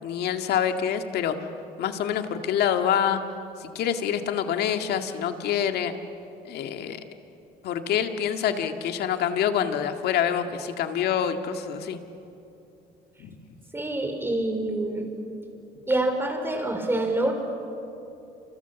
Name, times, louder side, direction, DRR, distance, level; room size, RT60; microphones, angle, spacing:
voice 1, 0.0-1.4 1.8-3.2 3.6-6.0 6.4-7.0 7.6-12.0 13.2-13.3, left 9 dB, 75° left, 7 dB, 2.0 m, -26 dB
voice 2, 13.7-15.1 15.9-17.3, right 2 dB, 15° right, 4 dB, 4.7 m, -26 dB
29.5 x 27.5 x 7.1 m, 2.8 s
cardioid pair, 110°, 17 cm